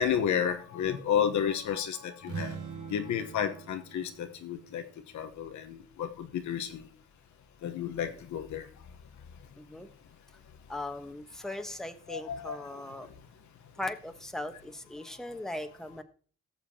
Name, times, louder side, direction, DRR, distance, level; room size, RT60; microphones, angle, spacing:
voice 1, 0.0-2.6 2.9-4.8 5.1-6.8 7.6-8.6 12.1-12.5, left 8 dB, 70° left, 7 dB, 1.1 m, -31 dB
sound 1, 2.2-5.9, right 5 dB, 75° right, 1.8 m, -43 dB
voice 2, 9.6-9.9 10.7-13.1 13.8-16.0, left 1 dB, ahead, 7 dB, 1.1 m, -39 dB
18.5 x 6.8 x 2.8 m, 0.41 s
cardioid pair, 90°, 30 cm